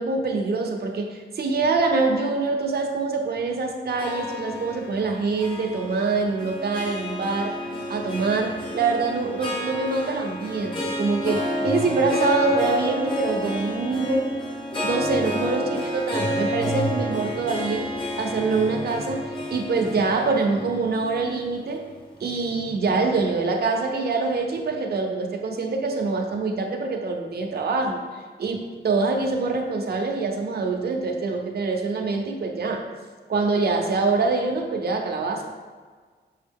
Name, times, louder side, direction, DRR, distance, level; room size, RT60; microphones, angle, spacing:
voice 1, 0.0-7.6 7.9-14.3 14.8-17.9 18.2-21.9 22.2-28.0 28.4-32.8 33.3-35.5, right 3 dB, 60° right, 2 dB, 0.7 m, -25 dB
Harp, 3.9-22.4, left 1 dB, 30° left, 1.1 m, -30 dB
5.8 x 5.5 x 3.5 m, 1.5 s
wide cardioid pair, 150°, 18 cm